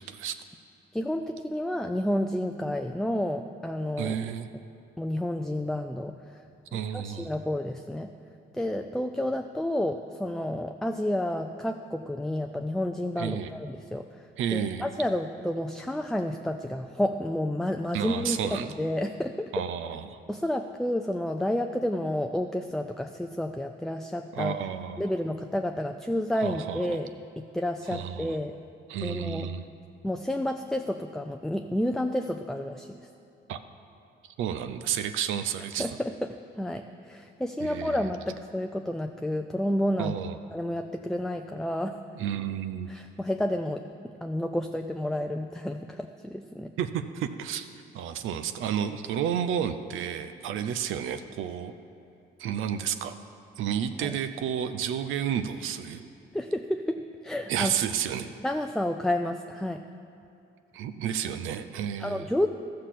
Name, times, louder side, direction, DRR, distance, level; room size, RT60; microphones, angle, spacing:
voice 1, 0.1-0.4 4.0-4.5 6.7-7.3 13.2-13.5 14.4-14.9 17.9-18.7 19.5-20.2 24.3-25.1 26.4-27.0 27.8-28.4 28.9-29.6 33.5-33.6 34.4-36.0 37.6-38.1 40.0-40.4 42.1-42.9 46.8-47.7 47.9-51.7 52.4-53.2 53.6-56.1 57.5-58.3 60.7-62.3, right 9 dB, 85° right, 9 dB, 0.6 m, -31 dB
voice 2, 0.9-4.2 5.0-6.4 6.7-8.1 8.5-14.2 14.5-19.5 20.3-24.6 25.0-27.1 27.4-28.5 29.0-29.5 30.0-33.0 35.8-40.2 40.5-42.0 42.9-43.9 44.2-46.7 54.0-54.2 56.3-57.7 58.4-59.8 62.0-62.5, left 1 dB, ahead, 5 dB, 0.4 m, -30 dB
13.0 x 6.6 x 5.8 m, 2.7 s
cardioid pair, 90°, 20 cm